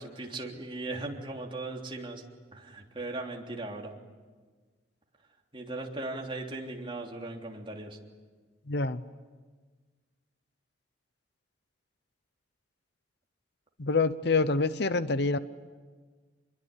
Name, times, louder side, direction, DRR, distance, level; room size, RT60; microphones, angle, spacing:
voice 1, 0.0-2.2 2.5-3.9 5.5-8.0, right 2 dB, 25° right, 0 dB, 3.3 m, -38 dB
voice 2, 8.7-9.0 13.8-15.4, left 3 dB, 60° left, 13 dB, 0.9 m, -26 dB
26.0 x 22.5 x 9.8 m, 1.4 s
head